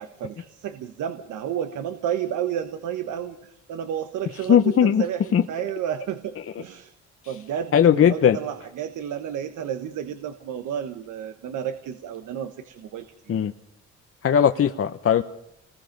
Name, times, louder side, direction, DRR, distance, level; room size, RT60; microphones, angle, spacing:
voice 1, 0.0-6.9 7.3-13.1, right 9 dB, 80° right, 8 dB, 1.3 m, -31 dB
voice 2, 4.5-5.0 5.3-5.4 7.7-8.4 13.3-13.5 14.2-15.2, left 8 dB, 45° left, 7 dB, 0.9 m, -18 dB
28.0 x 20.5 x 5.3 m, 0.79 s
cardioid pair, 90°, 30 cm